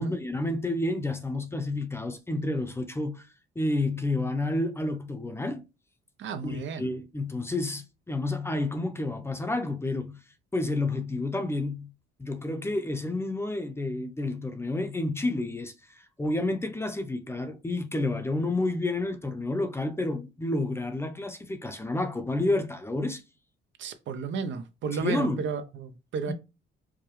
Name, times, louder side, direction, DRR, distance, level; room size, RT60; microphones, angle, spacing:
voice 1, 0.0-3.3 3.6-5.7 6.4-10.2 10.5-11.9 12.2-15.7 16.2-23.2 25.0-25.4 26.3-26.4, left 2 dB, 10° left, 0.7 m, -30 dB
voice 2, 6.2-6.9 23.8-26.3, right 5 dB, 70° right, 0.6 m, -33 dB
4.9 x 2.2 x 3.0 m
cardioid pair, 90°, 20 cm